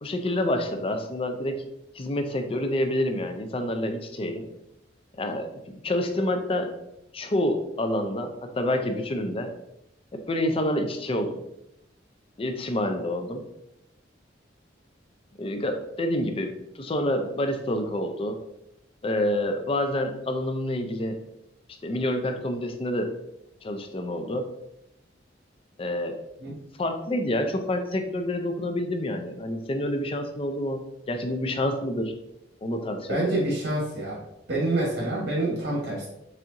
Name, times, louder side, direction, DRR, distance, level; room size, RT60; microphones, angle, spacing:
voice 1, 0.0-1.7 1.9-4.5 5.1-6.7 7.1-9.5 10.1-11.4 12.4-13.4 15.4-18.4 19.0-21.2 21.8-23.1 23.6-24.5 25.8-26.2 26.8-32.1 32.6-33.4, left 1 dB, 30° left, 6 dB, 0.4 m, -28 dB
voice 2, 33.1-34.2 34.5-36.1, right 2 dB, 75° right, -4 dB, 1.2 m, -27 dB
4.2 x 3.6 x 2.6 m, 0.83 s
head